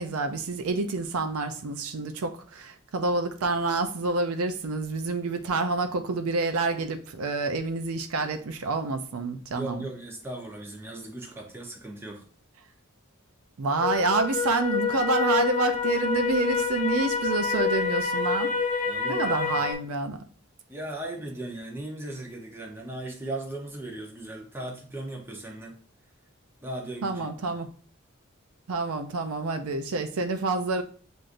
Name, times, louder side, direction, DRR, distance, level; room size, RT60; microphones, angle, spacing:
voice 1, 0.0-9.9 13.6-18.5 19.1-20.2 27.0-27.7 28.7-30.8, right 3 dB, 80° right, 0.5 m, -28 dB
voice 2, 9.5-12.2 18.8-19.7 20.7-25.8 26.6-27.3, right 2 dB, 10° right, 0.7 m, -37 dB
sound 1, 13.8-19.7, left 5 dB, 35° left, 0.4 m, -27 dB
7.5 x 2.6 x 2.5 m
head